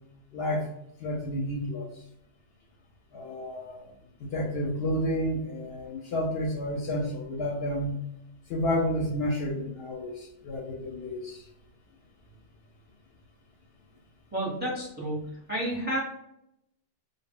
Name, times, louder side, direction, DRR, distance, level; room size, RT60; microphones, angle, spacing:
voice 1, 0.3-0.7 1.0-1.9 3.1-3.9 4.2-8.0 8.5-11.4, equal, 65° left, -1 dB, 0.7 m, -30 dB
voice 2, 14.3-15.2 15.5-16.0, right 1 dB, 10° right, -5 dB, 0.6 m, -30 dB
2.1 x 2.0 x 3.5 m, 0.79 s
omnidirectional pair, 1.3 m